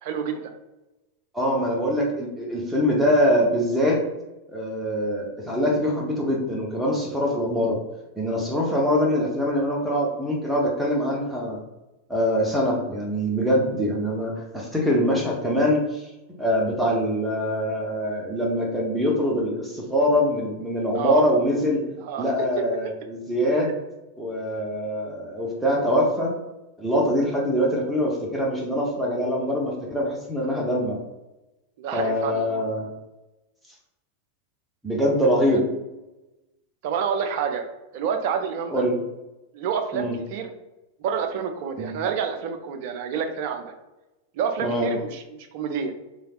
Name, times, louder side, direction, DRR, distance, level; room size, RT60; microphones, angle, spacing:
voice 1, 0.0-0.5 20.9-21.2 22.0-22.3 22.8-22.9 31.8-32.6 35.5-35.6 36.8-37.6 37.9-38.8 39.5-40.5 41.0-43.7 44.4-45.9, right 7 dB, 50° right, 5 dB, 0.4 m, -28 dB
voice 2, 1.3-4.0 4.5-7.8 8.2-11.6 12.1-16.0 16.4-21.8 22.2-23.7 24.2-26.3 26.8-31.0 31.9-32.9 34.8-35.6 38.7-38.9 39.9-40.1 41.8-41.9 44.6-44.9, equal, 5° right, -3 dB, 0.7 m, -23 dB
3.2 x 3.1 x 2.3 m, 1.0 s
figure-of-eight pair, 90°, 0 cm